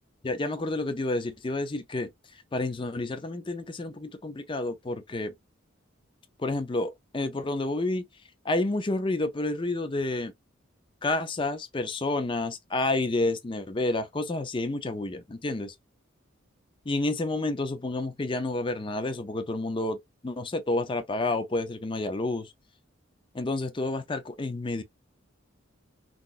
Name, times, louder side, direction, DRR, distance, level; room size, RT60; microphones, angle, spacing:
voice 1, 0.2-5.3 6.4-8.1 8.4-10.3 11.0-15.7 16.9-22.5 23.3-24.8, left 2 dB, 25° left, 0.5 m, -30 dB
3.8 x 2.4 x 2.4 m
head